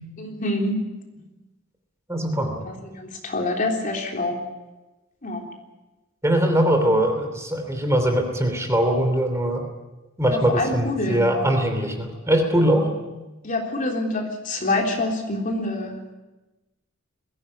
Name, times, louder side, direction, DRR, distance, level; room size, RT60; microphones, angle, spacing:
voice 1, 0.2-0.8 1.2-1.3 2.7-4.4 5.2-5.5 6.8-6.9 10.3-11.3 13.4-16.1, left 2 dB, 40° left, 1 dB, 3.6 m, -26 dB
voice 2, 2.1-2.6 6.2-9.6 10.2-12.9, right 1 dB, 15° right, 5 dB, 3.0 m, -21 dB
21.5 x 16.0 x 9.9 m, 1.1 s
head